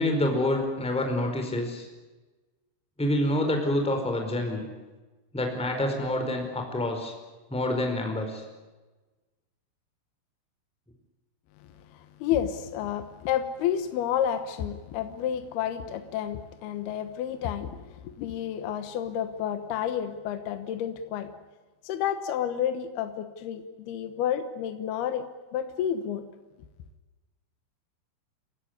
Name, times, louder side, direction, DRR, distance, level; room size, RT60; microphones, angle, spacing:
voice 1, 0.0-1.9 3.0-4.6 5.3-7.1 7.5-8.4, left 1 dB, ahead, 3 dB, 3.8 m, -27 dB
voice 2, 11.9-21.3 21.8-25.3 25.5-26.2, left 9 dB, 70° left, 9 dB, 2.6 m, -30 dB
29.0 x 16.0 x 9.7 m, 1.2 s
omnidirectional pair, 5.9 m